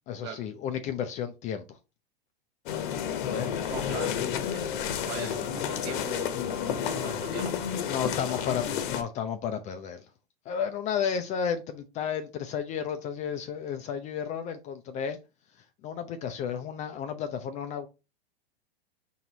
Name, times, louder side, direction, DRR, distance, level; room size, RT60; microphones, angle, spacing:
voice 1, 0.1-1.8 3.3-3.6 3.9-4.0 4.7-4.9 5.2-5.3 7.9-10.1 10.5-15.2 15.8-17.9, left 7 dB, 25° left, 0.4 m, -32 dB
sound 1, 2.7-9.0, left 8 dB, 55° left, 0.8 m, -31 dB
voice 2, 3.7-4.2 4.5-7.8 8.3-8.5, right 7 dB, 35° right, 0.8 m, -42 dB
4.4 x 3.0 x 3.8 m
hypercardioid pair, 105°, 30 cm